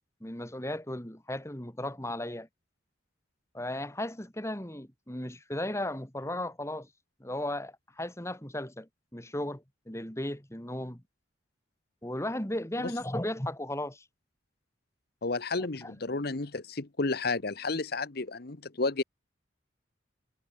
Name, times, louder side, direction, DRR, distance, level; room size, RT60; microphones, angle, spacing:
voice 1, 0.2-2.5 3.5-6.9 7.2-11.0 12.0-14.0 15.8-15.9, left 1 dB, 15° left, 2.6 m, -35 dB
voice 2, 15.2-19.0, left 3 dB, 55° left, 1.1 m, -31 dB
head